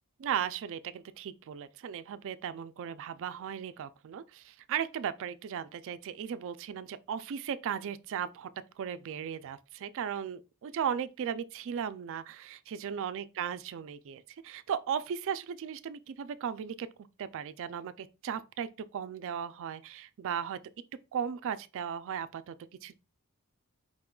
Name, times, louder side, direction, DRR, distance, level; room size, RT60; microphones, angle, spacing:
voice 1, 0.2-8.5 8.8-16.9 17.2-20.6 21.1-22.5 22.8-22.9, right 8 dB, 60° right, 0.3 m, -36 dB
4.8 x 2.3 x 3.6 m
head